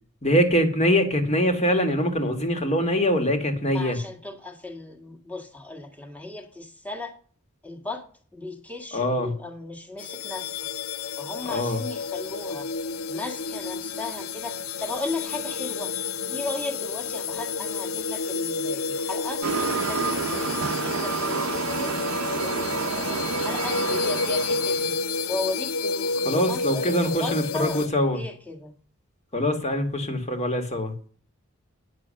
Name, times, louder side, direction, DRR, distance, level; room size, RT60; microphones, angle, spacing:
voice 1, 0.2-4.0 8.9-9.3 11.5-11.8 26.3-28.2 29.3-30.9, equal, 30° left, 6 dB, 1.9 m, -23 dB
voice 2, 3.7-7.2 7.6-8.1 8.3-10.7 11.2-12.7 13.1-22.0 22.4-28.7, left 2 dB, 5° left, 2 dB, 1.7 m, -36 dB
sound 1, 10.0-27.9, left 4 dB, 70° left, 0.6 m, -30 dB
sound 2, 19.4-24.9, right 5 dB, 75° right, 0.7 m, -29 dB
9.9 x 6.8 x 6.3 m, 0.43 s
head